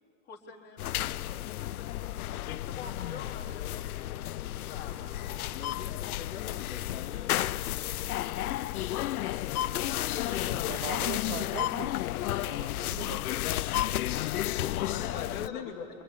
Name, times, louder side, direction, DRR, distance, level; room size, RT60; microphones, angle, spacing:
voice 1, 0.2-5.1 9.0-11.1 14.9-15.7, left 5 dB, 20° left, 0 dB, 3.5 m, -46 dB
sound 1, 0.8-15.5, left 14 dB, 85° left, 0.6 m, -32 dB
sound 2, 4.9-6.5, left 1 dB, 5° right, 2.6 m, -57 dB
voice 2, 5.5-7.5 14.6-15.8, left 8 dB, 65° left, 2 dB, 2.8 m, -42 dB
voice 3, 10.5-11.9 12.4-13.4, right 13 dB, 55° right, 14 dB, 0.9 m, -41 dB
26.5 x 26.0 x 8.5 m, 2.4 s
supercardioid pair, 150°, 43 cm